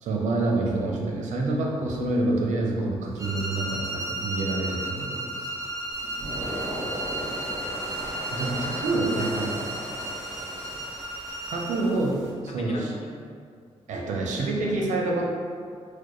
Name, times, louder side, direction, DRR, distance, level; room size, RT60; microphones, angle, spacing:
voice 1, 0.0-5.5 8.3-9.7 11.5-12.1 12.4-12.8 13.9-15.3, right 2 dB, 85° right, -2 dB, 0.6 m, -27 dB
sound 1, 3.2-11.9, right 1 dB, 25° right, 0.6 m, -34 dB
sound 2, 5.9-12.3, right 1 dB, 65° right, 1.2 m, -37 dB
voice 2, 6.4-7.9 11.7-12.0 12.5-13.1, left 2 dB, 60° left, -1 dB, 0.6 m, -42 dB
4.4 x 2.2 x 3.0 m, 2.2 s
cardioid pair, 80°, 12 cm